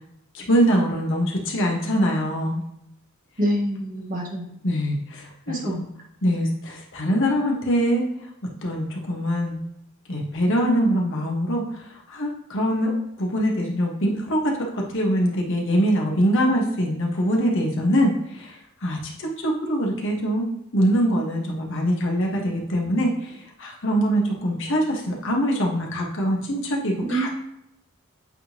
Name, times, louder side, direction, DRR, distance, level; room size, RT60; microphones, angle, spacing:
voice 1, 0.3-2.6 4.6-5.8 6.2-8.0 8.6-9.5 10.1-20.5 20.7-27.3, equal, 65° left, 0 dB, 1.4 m, -23 dB
voice 2, 3.4-4.6 5.5-5.8 27.1-27.3, right 1 dB, 40° right, -1 dB, 1.5 m, -26 dB
8.4 x 3.8 x 2.9 m, 0.81 s
head